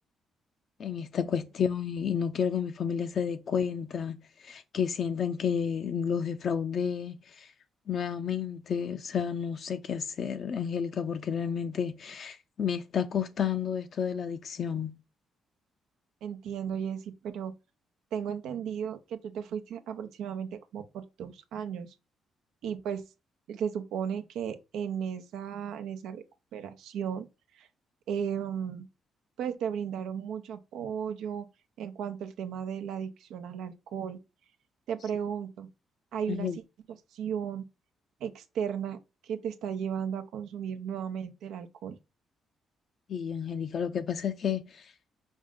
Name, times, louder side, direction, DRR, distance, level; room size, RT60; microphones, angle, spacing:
voice 1, 0.8-7.5 7.9-14.9 36.3-36.6 43.1-44.9, left 7 dB, 55° left, 0.4 m, -31 dB
voice 2, 16.2-17.5 18.1-21.9 22.6-23.0 23.5-26.2 26.5-27.3 27.5-27.7 28.1-28.9 29.4-31.5 31.8-34.2 34.9-35.7 36.1-36.5 37.1-37.7 38.2-42.0, right 8 dB, 85° right, 0.7 m, -35 dB
5.3 x 2.5 x 3.6 m
cardioid pair, 90°, 0 cm